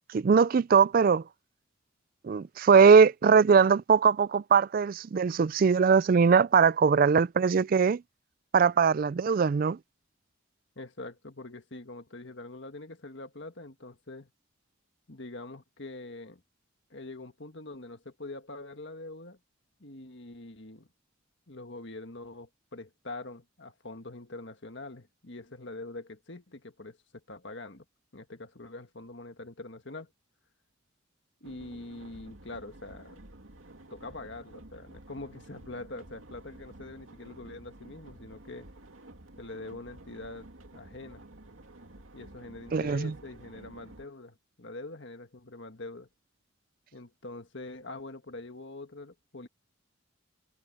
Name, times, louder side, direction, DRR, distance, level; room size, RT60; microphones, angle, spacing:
voice 1, 0.1-1.2 2.2-8.0 8.5-9.8 42.7-43.1, right 6 dB, 45° right, 0.3 m, -21 dB
voice 2, 10.8-14.3 15.1-16.4 16.9-19.4 19.8-20.9 21.5-27.9 28.1-30.1 31.4-33.2 33.9-38.7 39.4-41.2 42.1-46.1 46.9-49.5, left 2 dB, 60° left, 1.8 m, -44 dB
sound 1, 31.4-44.1, right 1 dB, 75° right, 2.6 m, -51 dB
head